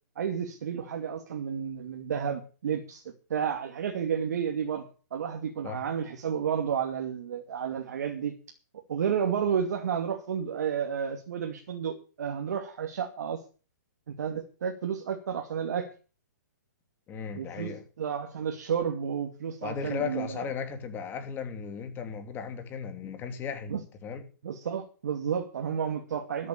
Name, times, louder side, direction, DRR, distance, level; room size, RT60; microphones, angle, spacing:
voice 1, 0.2-3.0 3.3-4.8 5.1-8.3 8.9-13.4 14.1-15.9 17.3-17.7 18.0-20.3 23.7-23.8 24.4-26.5, right 7 dB, 65° right, 2.6 m, -31 dB
voice 2, 17.1-17.8 19.6-23.8 24.0-24.3, left 6 dB, 20° left, 2.8 m, -36 dB
13.5 x 8.4 x 7.0 m
hypercardioid pair, 135°, 10 cm